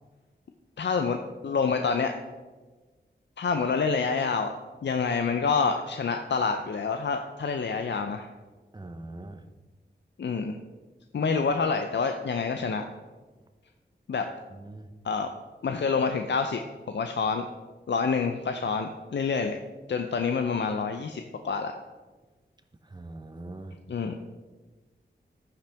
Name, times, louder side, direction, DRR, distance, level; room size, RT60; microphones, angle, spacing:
voice 1, 0.8-1.2 1.4-2.2 3.4-4.5 4.8-8.3 10.2-10.6 11.1-12.9 14.1-14.3 15.0-15.3 15.6-16.6 16.9-17.4 17.9-19.6 19.9-21.8 23.9-24.1, left 5 dB, 70° left, 6 dB, 0.6 m, -27 dB
voice 2, 8.7-9.4 14.5-14.9 22.8-23.8, right 2 dB, 20° right, 7 dB, 0.8 m, -42 dB
14.0 x 5.7 x 3.5 m, 1.3 s
wide cardioid pair, 85°, 19 cm